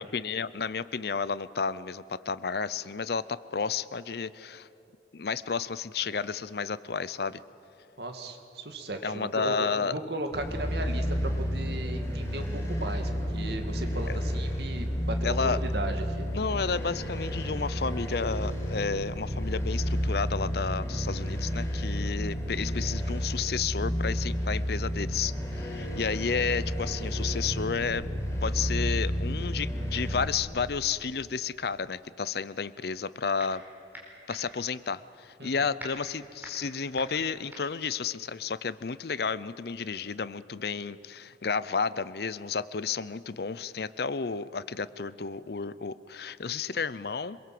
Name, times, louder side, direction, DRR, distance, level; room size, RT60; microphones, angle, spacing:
voice 1, 0.0-4.7 5.1-7.4 9.0-10.0 15.2-15.6 16.3-28.0 28.4-33.6 34.3-47.4, left 5 dB, 55° left, 17 dB, 0.6 m, -32 dB
voice 2, 8.0-16.3 35.4-35.6, right 2 dB, 60° right, 5 dB, 2.2 m, -36 dB
sound 1, 10.3-30.2, equal, 15° left, 4.5 m, -31 dB
sound 2, 32.9-33.6 33.9-38.9, right 1 dB, 10° right, 4.6 m, -46 dB
25.0 x 22.0 x 7.7 m, 2.8 s
head